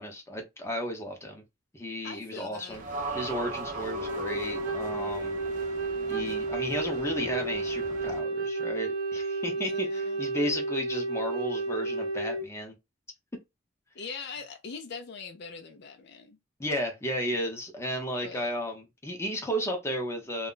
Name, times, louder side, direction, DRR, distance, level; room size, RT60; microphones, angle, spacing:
voice 1, 0.0-1.4 1.7-2.8 3.1-5.4 6.1-12.7 16.6-20.5, equal, 15° left, 0.7 m, -33 dB
voice 2, 2.0-2.8 9.6-10.2 13.9-16.4 18.2-18.5, left 5 dB, 60° left, 0.5 m, -42 dB
sound 1, 2.7-8.2, right 3 dB, 45° right, 0.7 m, -39 dB
Wind instrument woodwind instrument, 3.8-12.5, right 3 dB, 80° right, 0.6 m, -32 dB
2.3 x 2.1 x 3.8 m
head